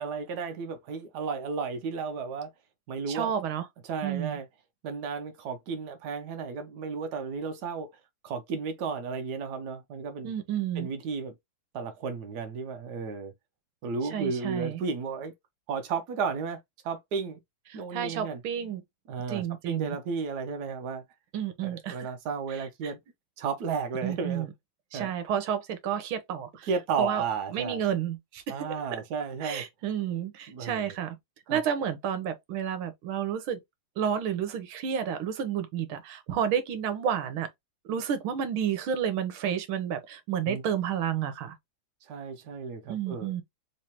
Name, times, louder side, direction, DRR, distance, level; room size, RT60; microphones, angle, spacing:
voice 1, 0.0-2.5 2.9-3.3 3.8-4.5 4.8-7.9 8.2-10.3 10.8-11.3 11.7-13.3 13.8-15.3 15.7-17.4 17.7-18.4 19.1-21.0 21.6-23.0 23.4-24.5 24.9-25.1 26.7-27.8 28.5-29.6 30.5-30.9 31.5-31.6 40.5-40.6 42.0-43.3, right 5 dB, 60° right, 1.2 m, -33 dB
voice 2, 3.1-3.6 4.0-4.4 10.2-10.9 14.1-14.8 17.9-18.8 19.3-20.0 21.3-22.1 22.5-22.9 24.0-24.5 24.9-26.7 27.0-27.2 27.5-28.6 29.4-31.2 31.5-33.6 34.0-37.5 37.9-41.6 42.9-43.4, right 8 dB, 80° right, 1.6 m, -31 dB
3.7 x 3.2 x 2.8 m
omnidirectional pair, 2.3 m